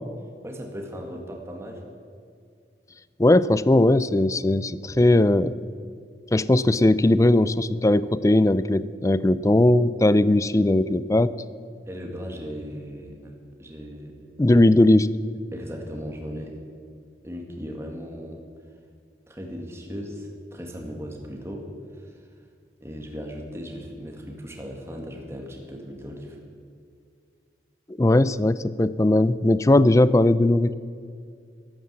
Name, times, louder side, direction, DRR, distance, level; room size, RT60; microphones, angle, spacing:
voice 1, 0.4-1.8 11.9-14.2 15.5-16.6 17.2-18.4 19.3-21.7 22.0-22.2 22.8-26.4, equal, 15° right, 1 dB, 2.0 m, -37 dB
voice 2, 3.2-5.5 6.3-11.3 14.4-15.1 28.0-30.7, left 1 dB, 20° left, 17 dB, 0.4 m, -19 dB
14.5 x 13.5 x 7.6 m, 2.3 s
head